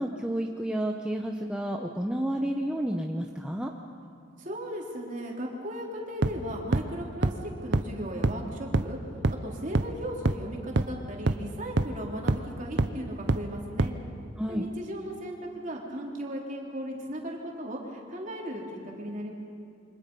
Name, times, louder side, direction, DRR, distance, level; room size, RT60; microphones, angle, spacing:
voice 1, 0.0-3.7 14.4-14.7, right 1 dB, 5° right, 1 dB, 0.9 m, -30 dB
voice 2, 4.4-9.0 9.3-13.9 14.5-19.3, equal, 40° right, -1 dB, 3.5 m, -37 dB
sound 1, 6.2-6.3 6.7-6.8 7.2-7.3 7.7-7.8 8.2-8.3 8.7-8.8 9.2-9.3 9.7-9.8 10.2-10.3 10.8-10.9 11.3-11.4 11.8-11.9 12.3-12.4 12.8-12.9 13.3-13.4 13.8-13.9, right 2 dB, 60° right, 0.9 m, -23 dB
27.5 x 24.5 x 5.5 m, 2.4 s
head